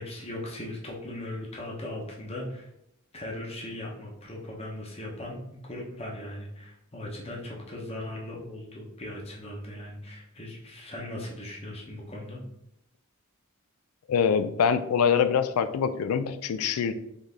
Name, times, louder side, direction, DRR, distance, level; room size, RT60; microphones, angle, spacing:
voice 1, 0.0-2.7 3.1-12.4, left 1 dB, 30° left, -2 dB, 0.9 m, -38 dB
voice 2, 14.1-16.9, left 7 dB, 90° left, 11 dB, 0.4 m, -24 dB
4.1 x 3.2 x 3.5 m, 0.80 s
head